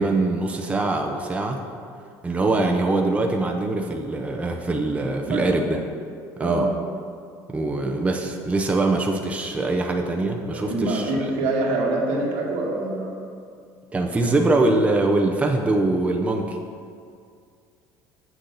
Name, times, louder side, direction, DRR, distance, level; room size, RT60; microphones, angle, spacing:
voice 1, 0.0-1.6 2.2-5.8 6.4-6.7 7.5-11.3 13.9-16.6, right 2 dB, 15° right, 2 dB, 0.7 m, -23 dB
voice 2, 6.4-6.7 10.5-13.1, right 2 dB, 80° right, -2 dB, 1.6 m, -25 dB
7.5 x 6.5 x 4.0 m, 2.3 s
supercardioid pair, 100°, 8 cm